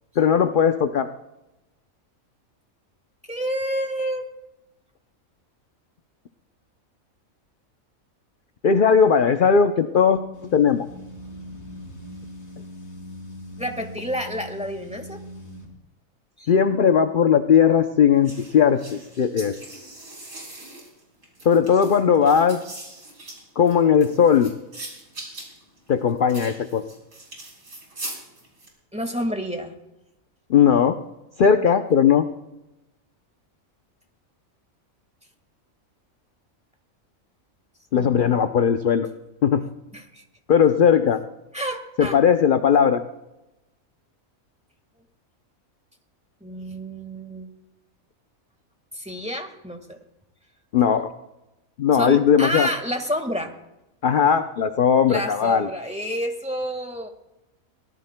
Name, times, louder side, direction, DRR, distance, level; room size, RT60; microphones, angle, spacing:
voice 1, 0.2-1.1 8.6-10.2 10.5-10.9 16.5-19.6 21.4-22.6 23.6-24.5 25.9-26.8 30.5-31.0 31.4-32.2 37.9-39.1 39.4-39.6 40.5-41.2 42.0-43.0 50.7-51.1 51.8-52.7 54.0-55.7, left 7 dB, 50° left, 8 dB, 0.6 m, -18 dB
voice 2, 3.3-4.2 13.6-15.2 16.4-16.5 28.9-29.7 37.9-38.4 39.9-40.2 41.5-42.2 46.4-47.5 48.9-50.0 51.9-53.5 55.1-57.1, equal, 5° right, 5 dB, 1.4 m, -29 dB
sound 1, 10.3-15.7, left 1 dB, 70° left, 4.2 m, -40 dB
sound 2, 18.2-28.7, right 2 dB, 85° right, 4.6 m, -41 dB
23.0 x 18.5 x 2.2 m, 0.94 s
omnidirectional pair, 1.5 m